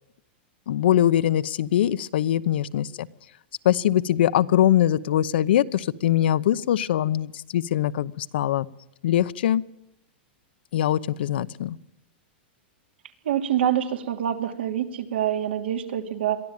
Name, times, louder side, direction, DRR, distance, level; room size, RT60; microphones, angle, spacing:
voice 1, 0.7-3.1 3.6-8.7 9.0-9.6 10.7-11.8, left 11 dB, 65° left, 15 dB, 0.8 m, -22 dB
voice 2, 13.2-16.4, right 10 dB, 75° right, 7 dB, 2.9 m, -26 dB
22.5 x 14.5 x 9.0 m, 0.88 s
supercardioid pair, 170°, 6 cm